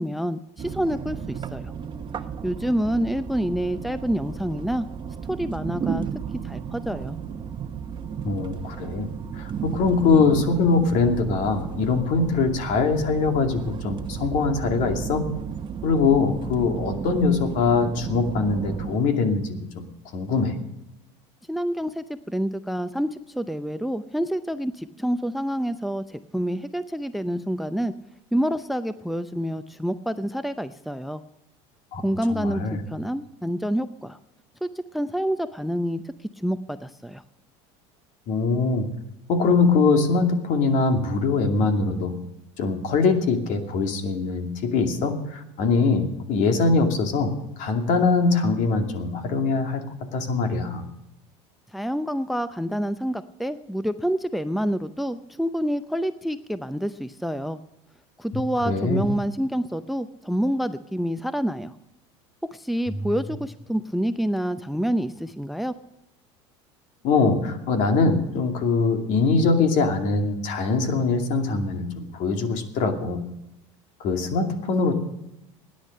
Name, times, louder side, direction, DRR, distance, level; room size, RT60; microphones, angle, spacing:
voice 1, 0.0-1.7 2.4-4.9 5.3-6.0 6.4-7.2 21.5-27.9 28.3-31.2 32.0-34.2 34.6-36.0 36.4-37.2 51.7-57.6 58.2-61.7 62.5-65.7, equal, ahead, 12 dB, 0.6 m, -27 dB
sound 1, 0.6-19.0, right 7 dB, 30° right, 1.0 m, -34 dB
voice 2, 8.2-15.2 15.8-19.8 20.1-20.6 31.9-32.0 32.3-32.8 38.3-38.9 39.3-42.1 42.6-47.3 47.6-49.8 50.1-50.8 58.6-59.0 63.0-63.1 67.0-73.2 74.0-75.0, left 4 dB, 55° left, 5 dB, 2.6 m, -22 dB
17.0 x 10.5 x 6.6 m, 0.87 s
supercardioid pair, 105°, 15 cm